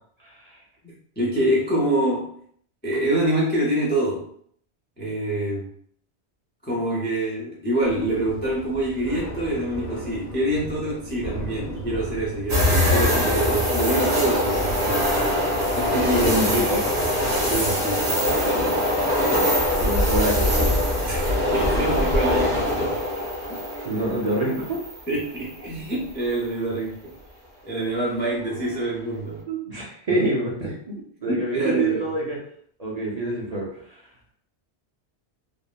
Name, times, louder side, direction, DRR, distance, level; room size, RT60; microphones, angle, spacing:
voice 1, 0.8-2.3 2.8-4.3 5.0-5.7 6.6-14.8 15.7-16.4 17.5-18.2 21.0-23.0 23.5-23.7 25.1-27.1 27.6-29.4 30.1-30.3 30.6-30.7 31.3-32.1, right 1 dB, 15° left, -5 dB, 0.4 m, -26 dB
Thunder / Rain, 7.8-20.7, right 1 dB, 50° left, 0.8 m, -37 dB
sound 1, 12.5-25.5 25.9-26.0 28.5-28.9, left 1 dB, 75° right, 1.4 m, -23 dB
voice 2, 16.2-16.8 19.7-20.7 23.8-24.8 29.5-30.9 31.2-32.4 32.8-33.7, right 2 dB, 45° right, -5 dB, 0.6 m, -25 dB
3.3 x 2.0 x 2.3 m, 0.62 s
omnidirectional pair, 1.2 m